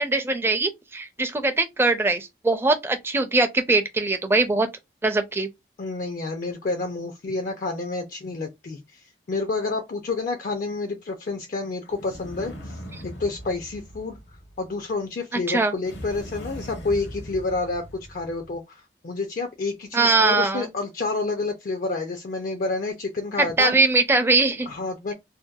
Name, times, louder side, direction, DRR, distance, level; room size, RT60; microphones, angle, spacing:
voice 1, 0.0-4.7 5.0-5.5 15.5-15.7 19.9-20.7 23.4-24.7, right 3 dB, 15° right, 0.4 m, -21 dB
voice 2, 5.8-12.8 13.0-14.2 14.6-23.7 24.7-25.1, left 3 dB, 50° left, 0.4 m, -29 dB
sound 1, 11.8-14.9 15.8-18.6, equal, 70° left, 0.8 m, -40 dB
2.7 x 2.2 x 2.2 m
head